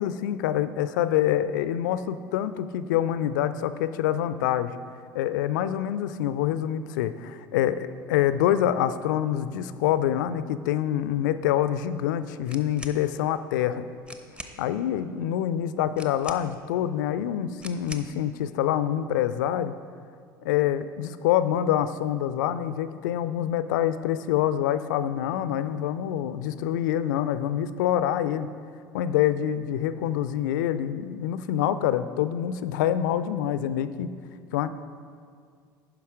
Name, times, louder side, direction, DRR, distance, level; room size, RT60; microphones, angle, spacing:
voice 1, 0.0-4.7 5.1-13.9 14.6-19.7 20.4-28.5 28.9-34.1 34.5-34.7, left 11 dB, 60° left, 13 dB, 0.4 m, -26 dB
sound 1, 12.4-13.0 13.7-13.8 14.0-14.6 15.9-16.7 17.6-18.2, right 1 dB, 10° right, 0.7 m, -42 dB
9.7 x 5.8 x 4.8 m, 2.1 s
figure-of-eight pair, 65°, 11 cm